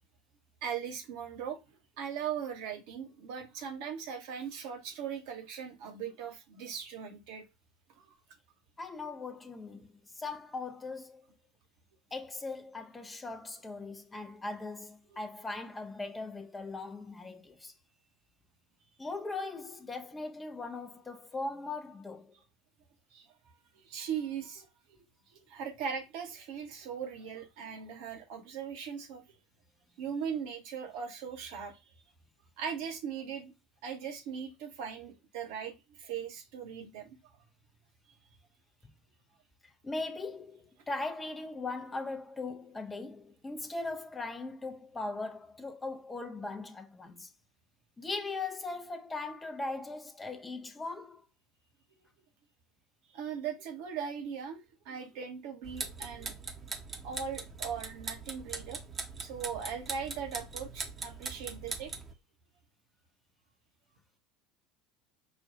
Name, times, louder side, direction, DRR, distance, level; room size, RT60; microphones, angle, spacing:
voice 1, 0.6-1.6 2.0-7.4 8.1-8.2 23.1-23.3 23.7-25.0 25.3-29.2 30.0-31.9 32.6-33.5 33.8-37.2 53.1-56.3 57.0-58.8 59.2-61.9, right 7 dB, 55° right, 0.9 m, -39 dB
voice 2, 8.8-11.3 12.1-17.7 19.0-22.3 39.8-47.3 48.0-51.2, left 3 dB, 15° left, 0.6 m, -39 dB
sound 1, 55.6-62.1, right 4 dB, 25° right, 0.8 m, -41 dB
5.1 x 2.3 x 2.5 m
figure-of-eight pair, 70°, 0 cm